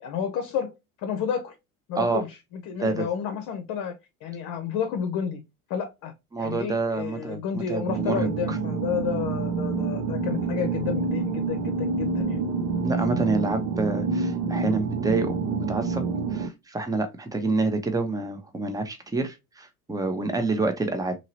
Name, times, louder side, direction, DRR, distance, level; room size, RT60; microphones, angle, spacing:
voice 1, 0.0-1.5 1.9-5.4 5.7-6.1 6.4-12.4, left 7 dB, 50° left, 0.7 m, -31 dB
voice 2, 6.3-8.6 12.8-16.0 16.3-21.1, right 3 dB, 10° right, 0.7 m, -28 dB
sound 1, 7.9-16.5, right 4 dB, 55° right, 0.6 m, -27 dB
3.0 x 2.8 x 2.8 m
hypercardioid pair, 70°, 44 cm